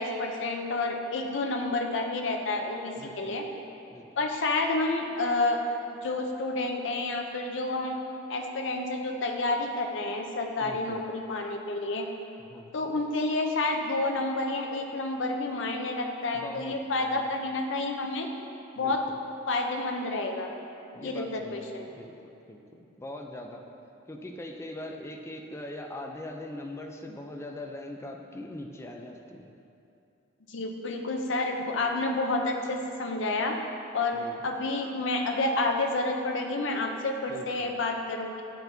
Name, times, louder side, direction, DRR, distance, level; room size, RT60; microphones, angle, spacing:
voice 1, 0.0-3.4 4.2-5.6 6.0-8.0 8.3-12.1 12.7-18.3 18.8-19.0 19.5-20.5 21.0-21.9 30.5-33.5 33.9-38.4, left 2 dB, 65° left, 2 dB, 0.6 m, -29 dB
voice 2, 3.0-3.4 3.9-4.1 10.6-11.0 12.5-12.9 16.3-17.3 18.8-19.2 20.9-22.1 22.5-23.7 24.1-29.5 34.1-34.4 37.3-37.8, left 1 dB, 15° left, 2 dB, 0.4 m, -42 dB
9.8 x 4.4 x 2.7 m, 2.8 s
head